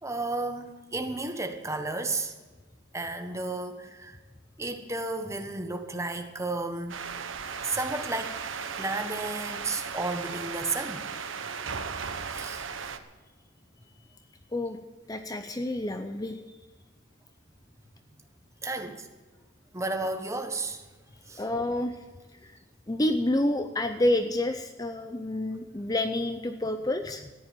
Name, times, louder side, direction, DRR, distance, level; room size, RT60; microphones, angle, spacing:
voice 1, 0.0-2.3 2.9-4.2 4.6-7.0 7.6-8.4 8.8-11.2 12.3-12.7 18.6-19.1 19.7-20.9 21.3-21.5, right 2 dB, 15° right, 6 dB, 1.3 m, -33 dB
sound 1, 6.9-13.0, right 6 dB, 90° right, 1.1 m, -36 dB
voice 2, 15.1-16.6 21.4-22.0 22.4-22.5 22.9-27.3, left 1 dB, 20° left, 8 dB, 0.6 m, -28 dB
14.0 x 10.0 x 7.6 m, 1.2 s
head